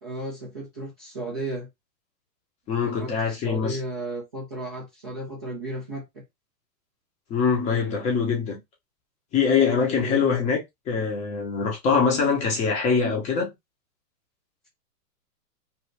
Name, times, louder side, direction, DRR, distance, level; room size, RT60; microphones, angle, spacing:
voice 1, 0.0-1.7 3.0-6.2 9.9-10.3, right 1 dB, 20° right, 0.3 m, -34 dB
voice 2, 2.7-3.8 7.3-8.6 9.3-10.6 10.9-13.5, left 5 dB, 15° left, 0.6 m, -23 dB
2.6 x 2.3 x 3.1 m
hypercardioid pair, 135°, 48 cm